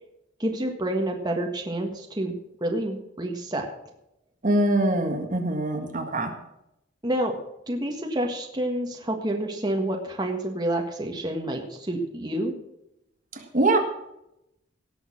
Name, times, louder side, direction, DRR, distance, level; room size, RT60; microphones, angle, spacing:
voice 1, 0.4-3.7 7.0-7.3 7.7-12.5, right 1 dB, 20° right, 1 dB, 1.6 m, -28 dB
voice 2, 4.4-6.3 13.3-13.8, right 1 dB, 45° right, 5 dB, 1.7 m, -23 dB
18.0 x 6.5 x 6.2 m, 0.84 s
head